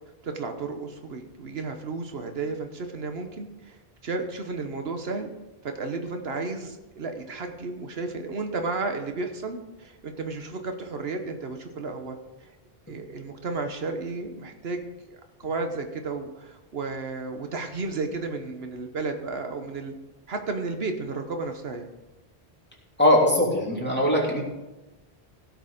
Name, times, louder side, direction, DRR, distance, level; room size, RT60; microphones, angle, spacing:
voice 1, 0.2-3.8 4.0-5.3 5.6-12.2 12.4-12.5 12.9-19.9 20.3-21.9, right 3 dB, 75° right, 6 dB, 1.3 m, -33 dB
voice 2, 23.0-24.5, left 1 dB, 10° left, -4 dB, 3.1 m, -21 dB
16.0 x 6.6 x 5.0 m, 1.1 s
omnidirectional pair, 1.0 m